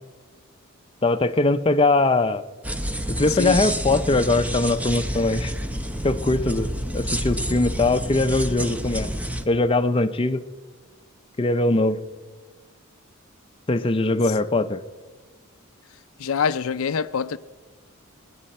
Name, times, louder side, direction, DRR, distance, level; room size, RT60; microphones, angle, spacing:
voice 1, 1.0-2.4 3.2-5.5 6.0-9.1 9.5-10.4 11.4-12.0 13.7-14.8, left 2 dB, 25° left, 0.5 m, -21 dB
sound 1, 2.6-9.5, equal, 5° right, 0.8 m, -28 dB
voice 2, 16.2-17.4, left 6 dB, 70° left, 0.5 m, -25 dB
26.0 x 10.0 x 4.3 m
head